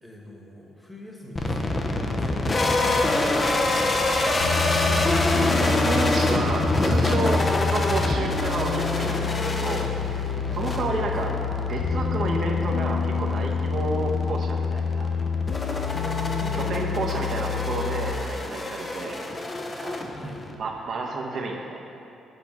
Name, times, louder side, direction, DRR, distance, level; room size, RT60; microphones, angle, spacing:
voice 1, 0.0-4.2 10.4-10.7 16.3-16.6 20.1-20.4, equal, 10° left, -1 dB, 1.3 m, -42 dB
sound 1, 1.4-20.6, left 2 dB, 30° left, 0.6 m, -27 dB
Bus, 1.4-11.4, right 4 dB, 30° right, 0.5 m, -36 dB
sound 2, 2.5-18.1, left 6 dB, 80° left, 0.5 m, -28 dB
voice 2, 5.3-7.4 7.7-9.8 10.1-10.2 10.6-11.3 11.7-15.1 15.7-15.9 16.5-19.2 19.8-19.9 20.6-21.8, right 3 dB, 55° right, 0 dB, 1.0 m, -30 dB
8.3 x 4.2 x 6.0 m, 2.7 s
cardioid pair, 90°, 0 cm